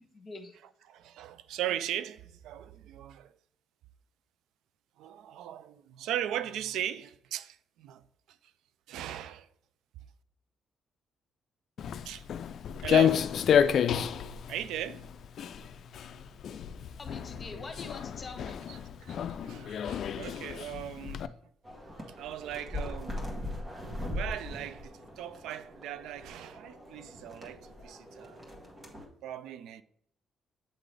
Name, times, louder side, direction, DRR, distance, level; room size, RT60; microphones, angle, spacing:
voice 1, 0.1-0.5 17.0-18.7, left 3 dB, 35° left, 1.5 m, -44 dB
voice 2, 0.9-3.3 5.0-8.0 8.9-9.5 12.0-12.3 12.8-13.3 14.5-15.1 18.7-19.2 19.4-21.3 22.2-23.2 24.1-28.4 29.2-29.8, right 11 dB, 85° right, 0.3 m, -38 dB
Walk footsteps, 11.8-21.3, left 8 dB, 65° left, 0.3 m, -30 dB
sound 1, 21.6-29.1, left 1 dB, 30° right, 1.7 m, -41 dB
8.3 x 3.8 x 3.3 m
cardioid pair, 90°, 0 cm